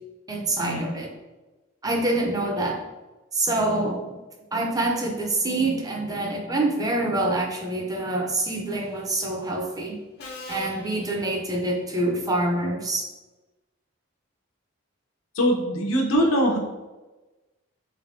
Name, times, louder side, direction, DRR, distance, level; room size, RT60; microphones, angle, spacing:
voice 1, 0.3-1.1 1.8-2.8 3.3-4.2 4.5-10.0 10.5-13.1, right 2 dB, 20° right, 1 dB, 0.4 m, -26 dB
Subway metro underground, 8.7-9.1 10.2-11.9, left 3 dB, 50° left, 0.5 m, -42 dB
voice 2, 15.3-16.6, equal, 85° left, 0 dB, 0.8 m, -22 dB
3.6 x 3.3 x 2.6 m, 1.1 s
head